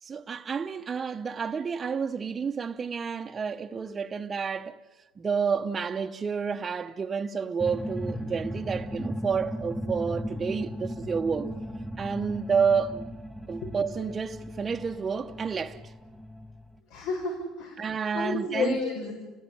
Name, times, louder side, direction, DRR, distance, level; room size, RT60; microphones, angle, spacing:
voice 1, 0.0-4.8 5.2-11.5 12.0-13.0 13.5-15.9 17.8-18.8, right 6 dB, 25° right, 0.8 m, -30 dB
sound 1, 7.6-16.8, equal, 5° left, 1.9 m, -37 dB
voice 2, 16.9-17.8 18.1-19.1, left 4 dB, 80° left, 5.8 m, -30 dB
30.0 x 20.0 x 10.0 m
cardioid pair, 135°, 0 cm